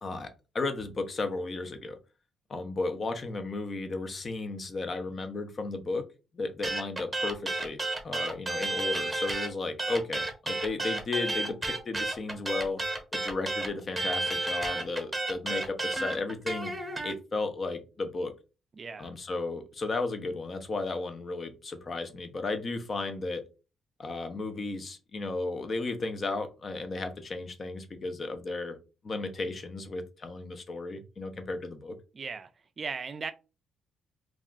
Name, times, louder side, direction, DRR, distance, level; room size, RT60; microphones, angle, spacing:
voice 1, 0.0-2.0 2.5-6.1 6.3-7.8 8.0-12.8 13.1-16.7 17.0-18.3 19.0-23.4 24.0-28.8 29.0-32.0, left 3 dB, 40° left, 0.6 m, -34 dB
sound 1, 6.6-9.5 9.8-17.1, right 2 dB, 10° right, 0.9 m, -31 dB
voice 2, 18.8-19.1 32.1-32.5 32.8-33.3, right 5 dB, 40° right, 0.3 m, -37 dB
2.4 x 2.2 x 3.6 m
cardioid pair, 90°, 0 cm